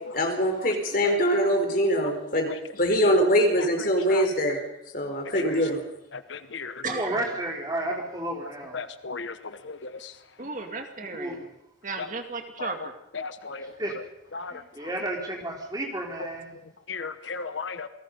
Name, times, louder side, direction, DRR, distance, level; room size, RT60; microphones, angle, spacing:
voice 1, 0.1-4.6 4.9-5.8, equal, 45° left, 3 dB, 4.4 m, -23 dB
voice 2, 5.4-5.7 6.9-8.8 11.1-11.5 13.8-13.9 14.5-16.5, right 1 dB, 20° right, 0 dB, 4.0 m, -32 dB
voice 3, 6.1-6.8 8.7-10.1 12.0-12.1 12.6-12.7 13.1-13.7 14.3-14.6 16.9-17.9, left 4 dB, 70° left, 11 dB, 1.1 m, -35 dB
voice 4, 6.8-7.2 10.4-11.4 11.8-12.9, right 3 dB, 40° right, 5 dB, 2.3 m, -34 dB
28.0 x 19.5 x 5.5 m, 0.83 s
head